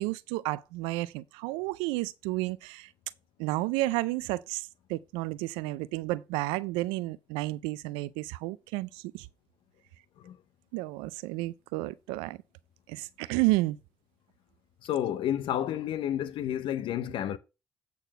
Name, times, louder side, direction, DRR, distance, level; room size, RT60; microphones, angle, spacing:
voice 1, 0.0-2.9 3.4-9.3 10.7-12.4 12.9-13.8, right 19 dB, 90° right, 0.4 m, -31 dB
voice 2, 14.8-17.4, left 11 dB, 75° left, 0.7 m, -30 dB
8.4 x 3.9 x 6.0 m
supercardioid pair, 55°, 9 cm